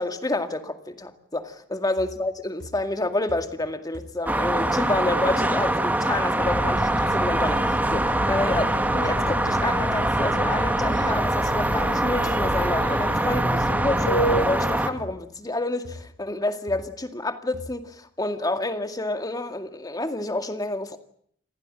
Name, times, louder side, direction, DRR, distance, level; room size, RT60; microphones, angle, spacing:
voice 1, 0.0-21.0, left 2 dB, 20° left, 2.1 m, -29 dB
sound 1, 2.0-2.3 2.6-3.0 3.3-3.7 3.9-4.3 4.6-4.9 5.3-5.5 6.5-6.7 7.5-7.6 8.3-8.5 9.0-9.2 9.6-9.8 10.2-10.3 11.3-11.4 12.4-12.6 13.2-13.5 14.1-14.4 15.0-15.2 15.8-16.1 16.7-16.9 17.5-17.8, left 1 dB, 65° right, 4.5 m, -42 dB
sound 2, 4.3-14.9, right 1 dB, 10° right, 1.8 m, -24 dB
sound 3, 6.4-14.5, right 1 dB, 70° left, 6.3 m, -31 dB
29.0 x 15.0 x 8.8 m
head